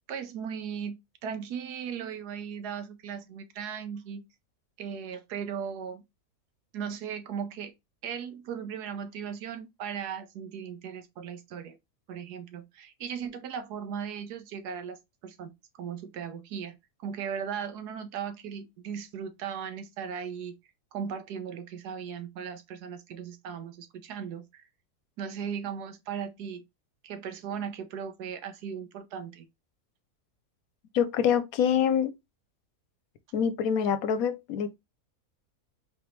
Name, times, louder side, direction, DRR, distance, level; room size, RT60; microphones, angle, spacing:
voice 1, 0.1-4.2 4.8-6.0 6.7-7.7 8.0-11.8 12.1-15.5 15.8-20.5 20.9-24.6 25.2-26.6 27.0-29.5, right 7 dB, 85° right, 1.3 m, -37 dB
voice 2, 30.9-32.1 33.3-34.8, left 8 dB, 70° left, 1.0 m, -25 dB
4.1 x 3.3 x 3.0 m
omnidirectional pair, 1.6 m